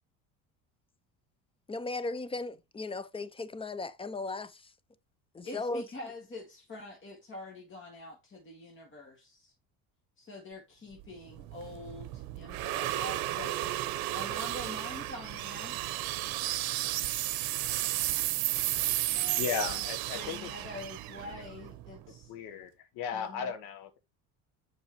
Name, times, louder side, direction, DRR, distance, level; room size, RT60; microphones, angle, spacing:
voice 1, 1.7-4.6 5.3-5.8, left 3 dB, 15° left, 0.5 m, -36 dB
voice 2, 5.4-9.5 10.2-15.8 19.1-19.8 20.1-22.3 23.1-23.5, left 2 dB, 30° left, 2.0 m, -45 dB
sound 1, 11.0-22.2, right 16 dB, 60° right, 0.8 m, -33 dB
voice 3, 19.4-20.5 22.3-24.0, left 7 dB, 70° left, 1.2 m, -36 dB
7.2 x 5.3 x 3.0 m
supercardioid pair, 95°, 40 cm